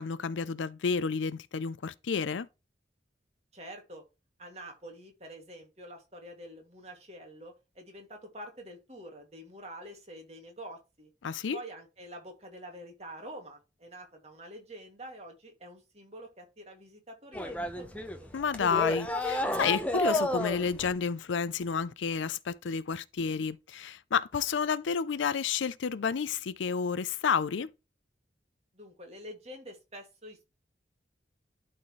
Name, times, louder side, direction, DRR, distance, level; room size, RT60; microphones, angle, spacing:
voice 1, 0.0-2.5 11.2-11.6 18.3-27.7, left 6 dB, 80° left, 0.5 m, -30 dB
voice 2, 3.5-4.0 4.4-11.1 11.5-18.3 28.7-30.5, right 1 dB, 35° right, 2.3 m, -47 dB
sound 1, 17.3-20.9, left 1 dB, 5° left, 0.8 m, -31 dB
12.0 x 4.3 x 3.1 m
head